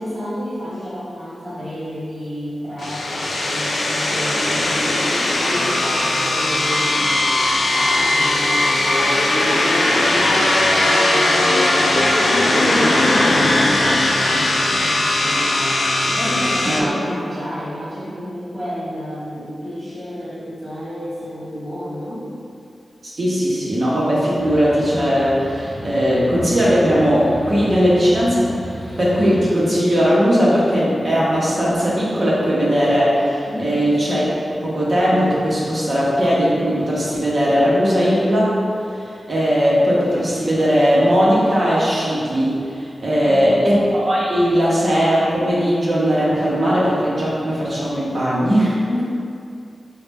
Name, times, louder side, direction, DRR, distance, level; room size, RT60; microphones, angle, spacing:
voice 1, 0.0-5.1 5.4-22.3 33.5-33.7 43.2-43.7 48.9-49.0, equal, 15° right, -13 dB, 1.0 m, -30 dB
sound 1, 2.8-16.8, left 2 dB, 75° left, 0.4 m, -18 dB
voice 2, 23.0-28.4 29.0-38.5 38.9-48.8, equal, 45° right, -8 dB, 0.7 m, -18 dB
sound 2, 24.3-29.5, equal, 55° left, 0.8 m, -34 dB
3.9 x 2.1 x 3.3 m, 2.5 s
wide cardioid pair, 120°, 0 cm